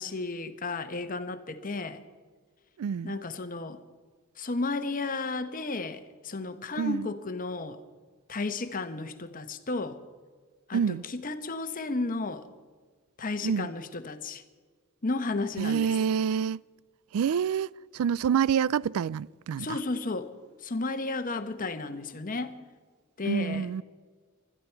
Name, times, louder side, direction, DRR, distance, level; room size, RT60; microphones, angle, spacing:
voice 1, 0.0-2.0 3.0-3.8 4.4-7.8 8.3-10.0 10.7-12.4 13.2-14.4 15.0-15.9 19.6-20.3 20.6-22.5 23.2-23.7, left 3 dB, 40° left, 1.0 m, -33 dB
voice 2, 2.8-3.1 6.8-7.1 10.7-11.1 13.4-13.7 15.6-16.6 17.1-19.8 23.2-23.8, right 7 dB, 80° right, 0.3 m, -27 dB
20.5 x 13.5 x 4.5 m
head